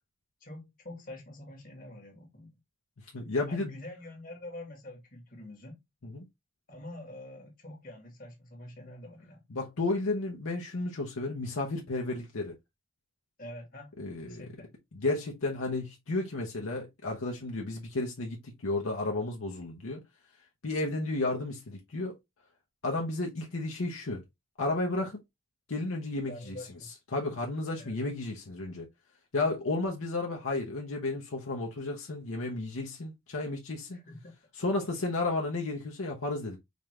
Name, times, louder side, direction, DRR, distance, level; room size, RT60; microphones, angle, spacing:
voice 1, 0.4-2.6 3.5-5.8 6.7-9.4 13.4-13.9 14.3-14.7 26.3-26.9 27.8-28.0 33.9-34.3, left 1 dB, 40° left, 1.6 m, -46 dB
voice 2, 3.0-3.7 6.0-6.2 9.5-12.5 14.0-14.5 14.9-20.0 20.6-22.1 22.8-24.2 24.6-25.2 25.7-26.6 27.1-28.9 29.3-34.0 34.6-36.6, left 2 dB, 90° left, 0.8 m, -32 dB
5.1 x 2.5 x 3.1 m
head